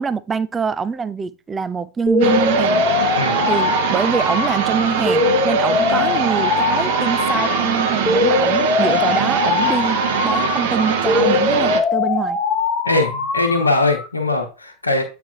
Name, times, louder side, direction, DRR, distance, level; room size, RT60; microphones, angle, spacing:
voice 1, 0.0-2.9 3.5-12.4, right 5 dB, 15° right, 0.4 m, -24 dB
sound 1, 2.1-14.1, left 4 dB, 35° left, 1.0 m, -21 dB
sound 2, 2.2-11.8, right 8 dB, 55° right, 1.0 m, -22 dB
voice 2, 3.1-3.5 12.8-15.0, left 2 dB, 80° left, 1.1 m, -20 dB
8.4 x 3.3 x 3.7 m
figure-of-eight pair, 90°, 0 cm